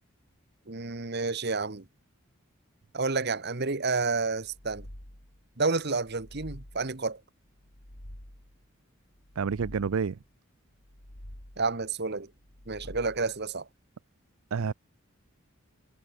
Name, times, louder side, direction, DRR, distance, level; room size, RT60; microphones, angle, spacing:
voice 1, 0.7-1.8 2.9-4.9 5.6-7.2 11.6-12.3 12.7-13.7, right 4 dB, 50° right, 1.4 m, -30 dB
sound 1, 4.4-5.5 5.9-7.1 7.5-8.6 9.1-10.2 10.7-11.8 12.4-13.5, equal, 85° left, 5.2 m, -48 dB
voice 2, 9.4-10.2 14.5-14.7, right 6 dB, 85° right, 0.5 m, -28 dB
head